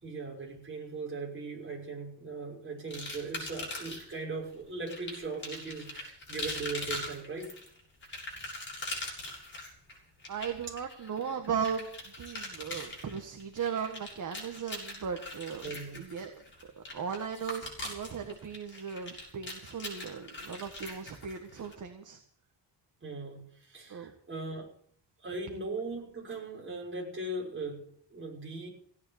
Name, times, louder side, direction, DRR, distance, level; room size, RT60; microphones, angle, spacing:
voice 1, 0.0-7.6 15.6-16.0 23.0-24.7 25.2-28.7, right 3 dB, 25° right, -2 dB, 5.9 m, -39 dB
sound 1, 2.9-4.2 4.9-21.7, left 1 dB, 25° left, 6.8 m, -41 dB
voice 2, 10.3-11.9 12.2-15.6 15.9-16.3 16.8-22.2 23.9-24.1, right 7 dB, 40° right, 5 dB, 1.7 m, -37 dB
17.0 x 9.5 x 8.2 m, 0.62 s
wide cardioid pair, 150°, 45 cm